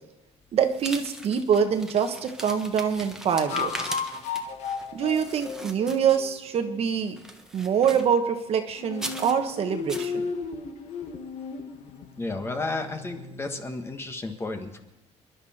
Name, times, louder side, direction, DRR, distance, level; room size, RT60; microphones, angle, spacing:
voice 1, 0.5-3.9 4.9-7.2 7.5-10.2, right 7 dB, 50° right, 6 dB, 1.3 m, -25 dB
sound 1, 0.6-6.5 6.9-8.2 8.9-9.4 9.9-10.1, right 1 dB, 5° right, 1.3 m, -40 dB
sound 2, 1.1-1.2 3.4-6.8 8.8-13.6, left 5 dB, 60° left, 1.7 m, -35 dB
voice 2, 12.2-14.8, left 2 dB, 20° left, 5 dB, 1.4 m, -32 dB
29.0 x 11.0 x 4.4 m, 0.99 s
cardioid pair, 135°, 13 cm